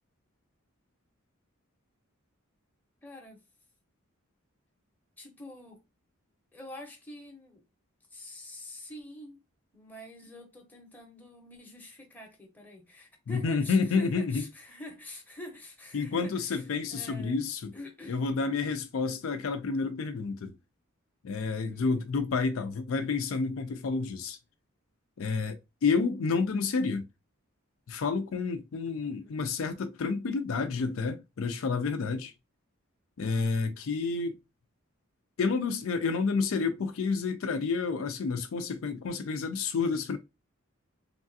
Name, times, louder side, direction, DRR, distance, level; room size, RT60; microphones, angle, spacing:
voice 1, 3.0-3.4 5.2-5.8 6.5-7.6 8.1-9.4 9.7-17.4 17.7-18.2 21.7-22.1 28.8-29.4, left 1 dB, 10° left, 0.7 m, -46 dB
voice 2, 13.3-14.4 15.9-17.7 18.1-20.5 21.2-24.4 25.2-27.0 27.9-32.3 33.2-34.3 35.4-40.2, left 4 dB, 70° left, 0.4 m, -29 dB
3.2 x 2.4 x 2.6 m
head